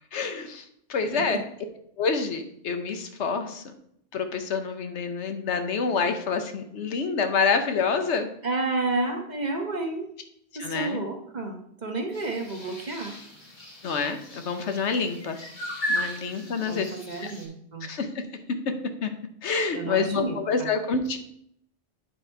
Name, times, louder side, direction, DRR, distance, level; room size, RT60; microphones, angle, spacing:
voice 1, 0.1-1.4 2.0-3.6 4.1-8.3 10.6-11.0 13.8-15.4 15.9-16.9 17.2-17.3 17.9-18.2 19.0-19.1 19.4-21.2, left 5 dB, 70° left, 7 dB, 1.1 m, -27 dB
voice 2, 8.4-10.1 10.5-13.2 16.6-17.9 19.7-20.7, right 3 dB, 40° right, 2 dB, 1.0 m, -31 dB
sound 1, 12.1-17.5, equal, 40° left, 1.6 m, -36 dB
9.0 x 4.2 x 4.4 m, 0.70 s
omnidirectional pair, 1.2 m